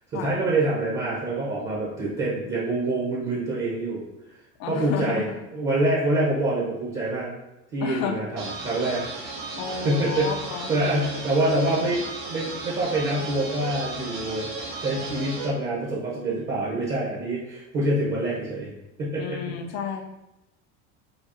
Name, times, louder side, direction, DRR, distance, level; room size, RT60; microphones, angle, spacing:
voice 1, 0.1-4.0 4.7-5.2 5.5-7.3 7.7-9.0 9.6-14.5 14.8-18.7 19.0-19.6, right 2 dB, 30° right, -5 dB, 0.9 m, -26 dB
voice 2, 4.6-5.3 5.7-5.8 7.8-8.2 9.6-10.8 19.2-20.0, left 7 dB, 50° left, 5 dB, 0.5 m, -31 dB
sound 1, 8.4-15.5, right 3 dB, 85° right, 1.4 m, -35 dB
5.1 x 2.3 x 2.6 m, 0.94 s
supercardioid pair, 130°, 36 cm